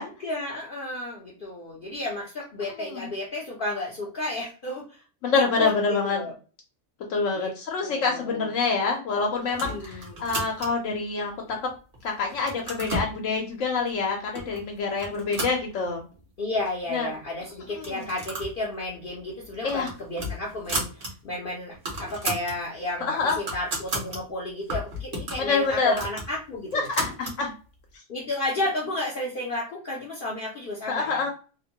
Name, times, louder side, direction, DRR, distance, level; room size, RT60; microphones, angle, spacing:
voice 1, 0.0-5.0 5.3-5.7 6.0-6.3 7.3-7.5 7.8-8.5 9.5-10.2 16.4-26.9 28.1-31.3, left 2 dB, 55° left, -3 dB, 0.6 m, -32 dB
voice 2, 5.2-6.2 7.1-11.6 12.0-16.0 16.9-17.1 17.8-18.0 19.6-19.9 23.1-23.4 25.4-25.9 26.7-27.5 30.9-31.3, left 4 dB, 75° left, 1 dB, 1.0 m, -26 dB
sound 1, 9.5-10.9 11.5-12.0 12.3-13.1 13.9-14.0 14.3-14.6 14.9-16.2 16.5-16.6 16.8-16.9 17.7-18.6 18.9-19.1 19.5-21.1 21.4-21.5 21.7-22.6 23.0-24.2 24.7-27.4, right 1 dB, 50° right, 1.0 m, -34 dB
2.9 x 2.1 x 2.7 m, 0.35 s
omnidirectional pair, 1.3 m